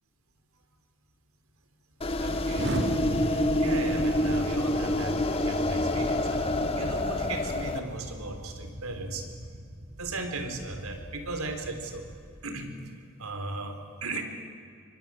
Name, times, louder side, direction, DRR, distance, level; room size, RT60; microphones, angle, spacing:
sound 1, 2.0-7.8, left 1 dB, 25° left, 1.8 m, -27 dB
voice 1, 2.2-9.3 10.0-12.1 12.4-14.2, right 2 dB, 85° right, 6 dB, 3.6 m, -37 dB
Explosion, 2.5-12.5, equal, 55° right, 2.6 m, -39 dB
25.0 x 24.0 x 9.9 m, 2.3 s
head